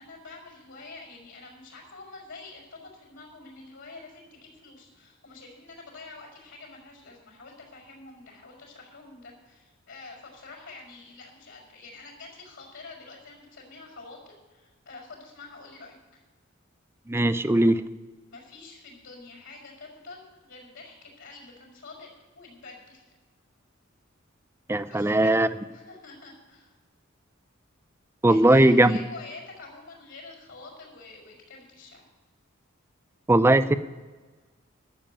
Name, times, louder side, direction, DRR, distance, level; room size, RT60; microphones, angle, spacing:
voice 1, 0.0-16.2 18.3-22.1 22.3-23.0 24.9-26.7 28.3-32.1, left 3 dB, 70° left, -6 dB, 4.9 m, -47 dB
voice 2, 17.1-17.8 24.7-25.5 28.2-29.0 33.3-33.8, right 1 dB, 10° right, 12 dB, 0.5 m, -19 dB
12.0 x 7.4 x 8.7 m, 1.3 s
head